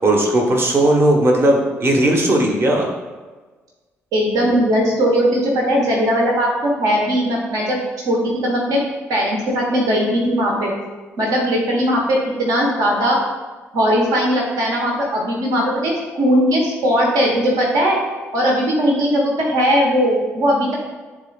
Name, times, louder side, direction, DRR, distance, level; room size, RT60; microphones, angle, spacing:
voice 1, 0.0-2.9, right 1 dB, 35° right, 1 dB, 1.2 m, -16 dB
voice 2, 4.1-7.8 8.1-8.8 9.1-10.7 11.2-13.2 13.7-18.0 18.3-20.8, equal, 60° right, -2 dB, 1.2 m, -18 dB
11.0 x 3.7 x 2.4 m, 1.3 s
figure-of-eight pair, 45°, 7 cm